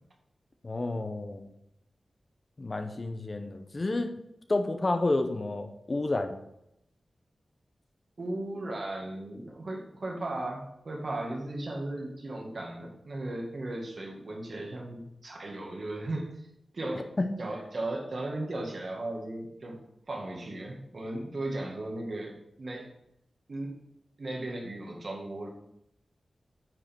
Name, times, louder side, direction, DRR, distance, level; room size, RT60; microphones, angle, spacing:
voice 1, 0.6-1.5 2.6-4.1 4.5-6.4 17.2-17.4, left 2 dB, 35° left, 6 dB, 0.7 m, -30 dB
voice 2, 8.2-16.5 16.7-17.0 17.4-19.8 20.1-22.3 22.6-22.9 23.5-23.7 24.2-25.5, right 2 dB, 55° right, 0 dB, 2.0 m, -36 dB
9.8 x 5.1 x 4.5 m, 0.80 s
wide cardioid pair, 125°, 0 cm